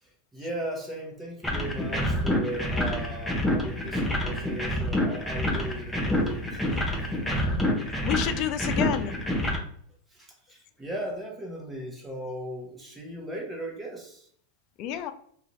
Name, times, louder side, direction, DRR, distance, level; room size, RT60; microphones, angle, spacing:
voice 1, 0.0-6.9 7.3-7.4 10.1-14.3, right 1 dB, 10° right, 0 dB, 1.0 m, -37 dB
sound 1, 1.4-9.6, left 1 dB, 10° left, 0.7 m, -27 dB
voice 2, 7.6-9.1 14.8-15.1, left 10 dB, 50° left, 9 dB, 0.4 m, -30 dB
2.5 x 2.4 x 3.1 m, 0.62 s
hypercardioid pair, 115°, 0 cm